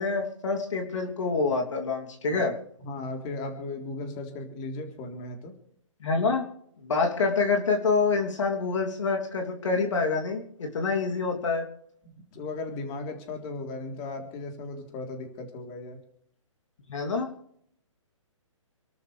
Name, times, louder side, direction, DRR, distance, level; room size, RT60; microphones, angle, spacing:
voice 1, 0.0-2.5 6.0-6.4 6.8-11.7 16.9-17.3, left 4 dB, 65° left, 2 dB, 3.1 m, -26 dB
voice 2, 2.8-5.5 12.0-16.0, left 2 dB, 30° left, 3 dB, 3.8 m, -36 dB
28.5 x 13.0 x 3.4 m, 0.68 s
hypercardioid pair, 135°, 17 cm